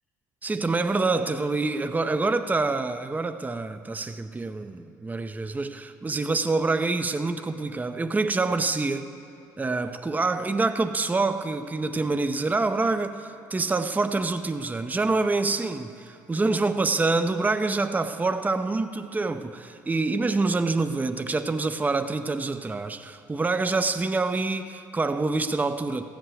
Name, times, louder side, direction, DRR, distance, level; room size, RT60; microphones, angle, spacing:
voice 1, 0.4-9.1 9.6-26.1, right 3 dB, 15° right, 0.6 m, -26 dB
14.5 x 8.3 x 7.8 m
hypercardioid pair, 60°, 10 cm